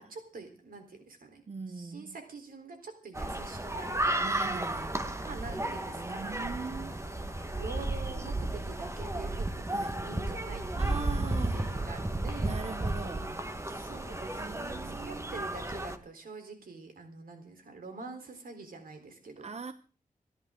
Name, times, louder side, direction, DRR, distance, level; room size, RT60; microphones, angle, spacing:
voice 1, 0.0-4.3 5.2-12.6 13.7-19.5, right 3 dB, 85° right, 3.9 m, -46 dB
voice 2, 1.5-2.2 4.2-7.0 9.7-10.0 10.8-11.7 12.4-13.4 13.7-14.0 14.3-15.5 19.4-19.7, right 4 dB, 50° right, 0.8 m, -42 dB
sound 1, 3.1-16.0, right 1 dB, 20° right, 1.4 m, -33 dB
26.5 x 10.5 x 3.8 m
cardioid pair, 65°, 14 cm